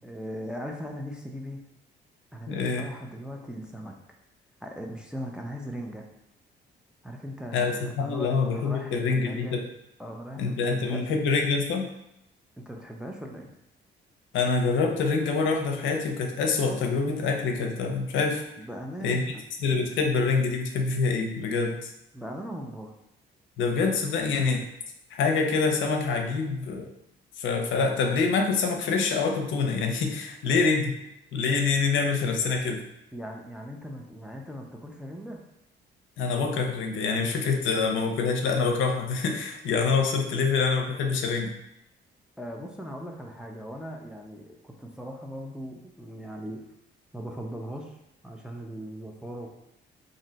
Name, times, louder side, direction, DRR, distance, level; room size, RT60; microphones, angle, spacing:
voice 1, 0.0-1.6 2.3-3.9 4.6-6.1 7.0-9.6 10.0-11.0 12.6-13.5 18.6-19.4 22.1-22.9 33.1-35.4 42.4-46.7 47.1-48.0 48.2-49.5, equal, 5° right, 0 dB, 0.4 m, -39 dB
voice 2, 2.5-2.9 7.5-9.6 10.4-11.9 14.3-18.4 19.0-19.4 19.6-21.8 23.6-24.6 25.1-26.9 27.4-30.9 31.3-32.8 36.2-41.5, left 4 dB, 80° left, 3 dB, 0.5 m, -26 dB
2.6 x 2.0 x 3.9 m, 0.82 s
cardioid pair, 90°, 20 cm